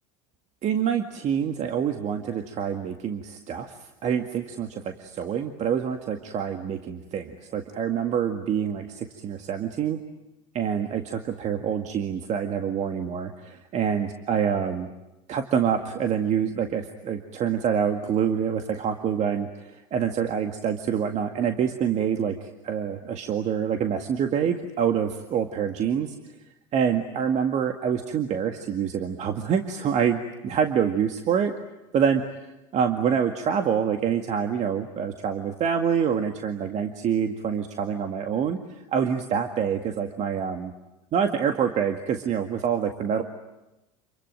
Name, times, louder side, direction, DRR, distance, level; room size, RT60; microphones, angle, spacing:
voice 1, 0.6-3.7 4.0-10.0 10.5-14.9 15.3-26.1 26.7-31.5 31.9-38.6 38.9-40.7 41.1-43.2, right 7 dB, 40° right, 5 dB, 2.0 m, -26 dB
28.0 x 22.5 x 9.2 m, 0.98 s
hypercardioid pair, 100°, 17 cm